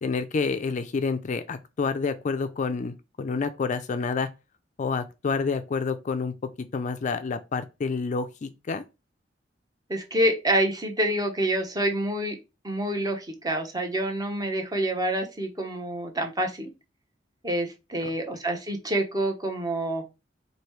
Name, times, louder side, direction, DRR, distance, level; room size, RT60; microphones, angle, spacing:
voice 1, 0.0-4.3 4.8-8.8 18.0-18.1, left 4 dB, 40° left, 0.4 m, -29 dB
voice 2, 9.9-12.4 12.6-16.7 17.4-20.0, right 1 dB, 20° right, 0.8 m, -27 dB
3.1 x 2.7 x 4.5 m
head